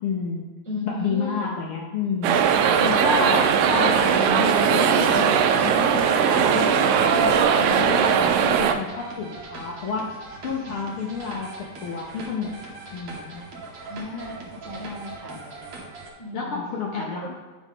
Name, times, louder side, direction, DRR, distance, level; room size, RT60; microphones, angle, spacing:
voice 1, 0.0-0.5 0.8-2.4 2.8-10.1 10.4-12.5 12.9-13.4 16.3-17.3, left 4 dB, 70° left, -1 dB, 1.3 m, -30 dB
voice 2, 0.6-1.5 3.1-3.4 13.8-15.4 16.2-16.6 17.0-17.3, left 3 dB, 20° left, -6 dB, 0.4 m, -36 dB
sound 1, 2.2-8.7, right 7 dB, 85° right, 2.0 m, -19 dB
sound 2, 2.4-16.1, right 3 dB, 55° right, 1.9 m, -41 dB
9.5 x 5.0 x 3.7 m, 1.4 s
omnidirectional pair, 3.3 m